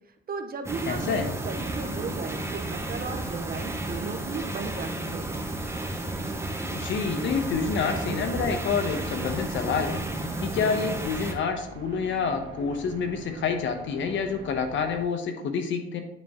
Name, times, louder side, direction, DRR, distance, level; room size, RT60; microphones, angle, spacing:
voice 1, 0.3-5.3, right 5 dB, 50° right, 7 dB, 1.0 m, -36 dB
sound 1, 0.6-11.3, right 2 dB, 15° right, 1.2 m, -32 dB
voice 2, 0.9-1.3 6.7-10.0 10.4-16.0, left 5 dB, 70° left, 6 dB, 1.1 m, -28 dB
sound 2, 7.4-15.0, right 4 dB, 80° right, 1.2 m, -44 dB
9.5 x 4.2 x 3.7 m, 0.88 s
cardioid pair, 90°, 20 cm